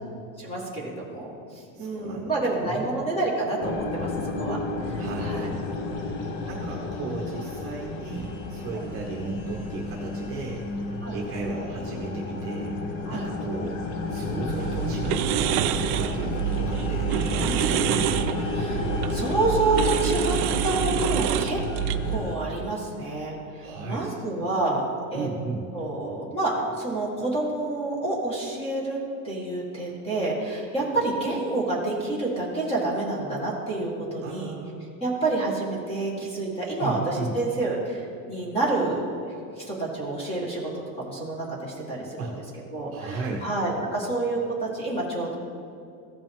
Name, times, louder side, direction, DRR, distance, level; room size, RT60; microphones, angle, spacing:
voice 1, 0.4-4.1 4.4-5.5 6.2-6.3 8.7-8.8 11.0-11.2 13.0-13.2 17.4-18.1 18.5-21.6 22.1-24.8 25.1-25.3 25.7-29.0 29.2-34.5 35.0-39.0 39.6-40.6 41.0-42.3 42.7-45.3, right 2 dB, 15° left, -3 dB, 1.6 m, -28 dB
voice 2, 1.7-2.9 5.0-5.7 6.4-10.6 11.1-13.8 14.1-18.1 23.6-24.0 25.1-25.6 34.2-34.8 36.8-37.3 42.2-42.3 42.9-43.5, right 4 dB, 30° right, -1 dB, 0.9 m, -35 dB
sound 1, 3.6-22.4, left 3 dB, 45° left, 0.9 m, -31 dB
sound 2, 14.5-22.2, right 12 dB, 80° right, 0.6 m, -27 dB
15.5 x 5.2 x 3.6 m, 2.6 s
cardioid pair, 175°, 43 cm